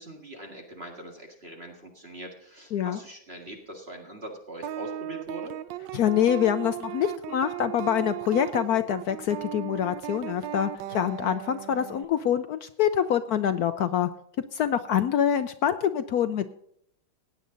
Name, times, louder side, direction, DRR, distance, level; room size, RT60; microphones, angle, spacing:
voice 1, 0.0-5.6, right 1 dB, 30° right, 2 dB, 2.0 m, -42 dB
sound 1, 4.6-12.0, right 12 dB, 70° right, 1.2 m, -37 dB
voice 2, 5.9-14.1 14.5-16.5, left 9 dB, 75° left, 10 dB, 0.8 m, -25 dB
16.5 x 9.5 x 3.9 m, 0.69 s
omnidirectional pair, 2.2 m